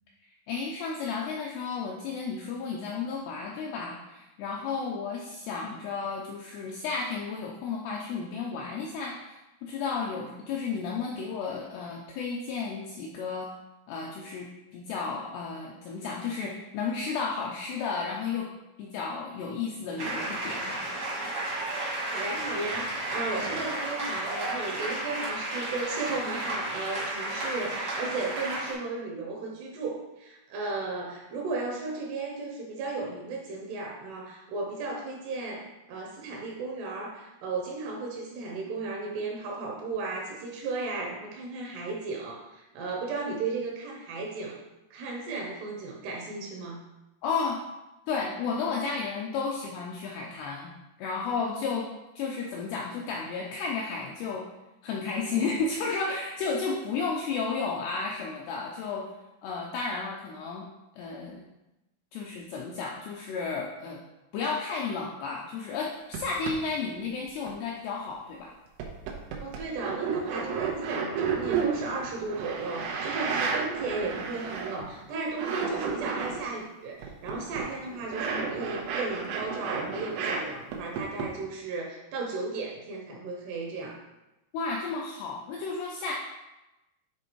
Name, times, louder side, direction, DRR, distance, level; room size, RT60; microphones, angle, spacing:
voice 1, 0.2-13.5 13.9-18.5 18.8-20.9 47.2-47.6 48.1-50.7 51.0-51.9 52.2-54.5 54.8-59.1 59.4-60.7 60.9-61.5 62.1-64.0 64.3-68.5 84.5-86.1, left 4 dB, 80° left, -2 dB, 2.3 m, -33 dB
sound 1, 20.0-28.7, right 1 dB, 50° right, 1.1 m, -33 dB
voice 2, 21.8-44.6 44.9-46.8 69.4-84.0, right 3 dB, 70° right, -1 dB, 2.8 m, -35 dB
sound 2, 66.1-66.2 66.4-66.5 67.1-67.5 68.1-68.2 68.8-75.0 75.3-76.4 77.0-80.4 80.7-81.3, right 6 dB, 90° right, 3.5 m, -32 dB
9.7 x 3.5 x 4.5 m, 0.98 s
omnidirectional pair, 5.5 m